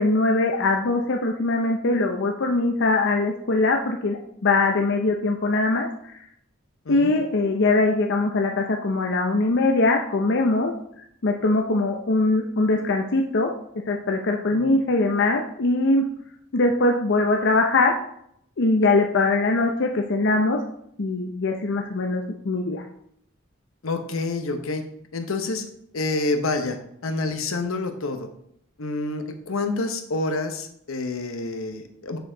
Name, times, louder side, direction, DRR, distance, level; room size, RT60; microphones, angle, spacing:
voice 1, 0.0-6.1 6.9-10.7 11.2-13.5 13.9-16.0 16.5-17.9 18.6-20.6 21.0-22.8, left 2 dB, 60° left, 3 dB, 0.6 m, -22 dB
voice 2, 6.8-7.1 14.5-14.7 23.8-24.8 25.1-25.6 25.9-28.3 28.8-32.2, left 2 dB, 80° left, 6 dB, 0.9 m, -28 dB
6.9 x 6.5 x 3.9 m, 0.71 s
head